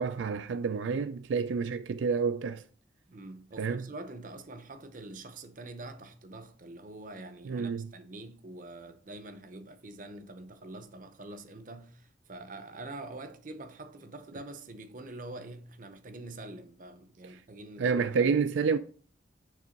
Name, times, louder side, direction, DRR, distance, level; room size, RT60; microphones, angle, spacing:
voice 1, 0.0-2.6 3.6-3.9 7.5-7.9 17.8-18.8, right 5 dB, 80° right, 0.3 m, -29 dB
voice 2, 3.1-18.3, right 2 dB, 45° right, 0.7 m, -45 dB
6.7 x 3.6 x 5.0 m
head